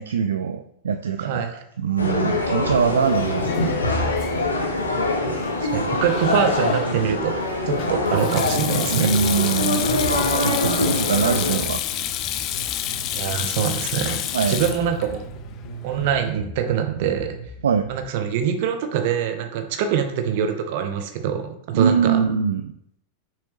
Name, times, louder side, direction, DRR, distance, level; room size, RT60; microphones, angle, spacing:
voice 1, 0.0-3.8 8.9-9.9 10.4-12.1 14.3-14.6 17.6-17.9 21.7-22.7, right 7 dB, 65° right, 8 dB, 0.3 m, -23 dB
sound 1, 2.0-11.6, left 2 dB, 80° left, 1.1 m, -24 dB
Sink (filling or washing), 2.6-16.3, left 12 dB, 35° left, 0.5 m, -30 dB
voice 2, 5.6-7.4 7.7-9.1 13.1-14.2 14.5-15.2 15.8-17.4 17.9-22.2, right 8 dB, 50° right, 6 dB, 0.9 m, -24 dB
sound 2, 10.1-18.0, right 1 dB, 60° left, 1.7 m, -39 dB
6.8 x 4.9 x 3.1 m, 0.74 s
figure-of-eight pair, 90°, 0 cm